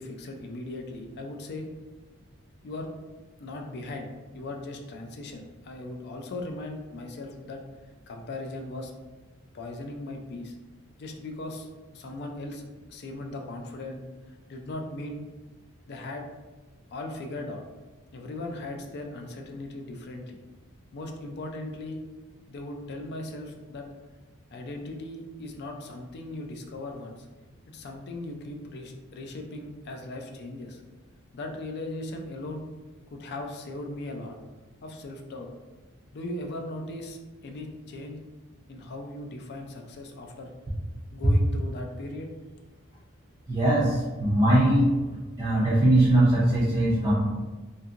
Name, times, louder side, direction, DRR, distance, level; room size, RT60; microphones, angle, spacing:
voice 1, 0.0-1.7 2.6-2.9 3.4-7.6 8.1-8.9 9.5-10.6 11.0-11.7 11.9-12.6 12.9-14.0 14.5-15.2 15.9-16.2 16.9-17.6 18.1-20.4 20.9-22.0 22.5-23.9 24.5-27.3 27.7-30.8 31.3-32.7 33.1-34.4 34.8-35.5 36.1-38.2 38.7-40.5 41.1-42.3, left 2 dB, 50° left, 3 dB, 0.4 m, -38 dB
voice 2, 43.5-44.9 45.4-47.1, right 1 dB, 20° right, -9 dB, 0.5 m, -21 dB
2.7 x 2.6 x 2.4 m, 1.2 s
head